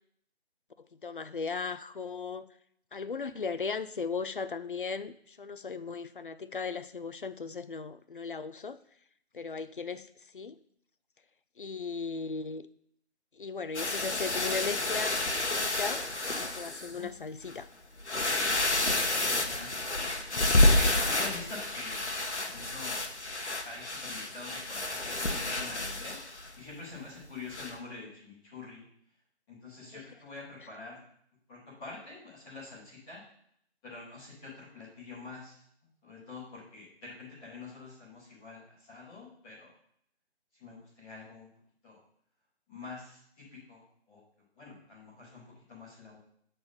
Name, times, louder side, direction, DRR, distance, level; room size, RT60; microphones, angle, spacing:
voice 1, 1.0-2.5 2.9-8.8 9.3-10.1 10.3-10.6 11.6-12.7 13.4-15.2 15.5-16.1 16.4-17.7 29.9-30.0, left 5 dB, 50° left, 13 dB, 0.4 m, -37 dB
sound 1, 13.7-16.9 17.5-17.6 18.0-26.5 27.5-27.8, left 2 dB, 90° left, 1.1 m, -29 dB
voice 2, 19.1-19.7 20.3-22.0 22.3-23.0 23.6-26.2 26.6-28.8 29.5-31.0 31.5-33.2 33.8-35.6 36.0-39.7 40.5-41.5 41.8-42.0 42.7-44.2 44.6-46.2, left 3 dB, 5° left, -11 dB, 0.8 m, -46 dB
7.6 x 4.0 x 5.5 m, 0.67 s
figure-of-eight pair, 155°, 33 cm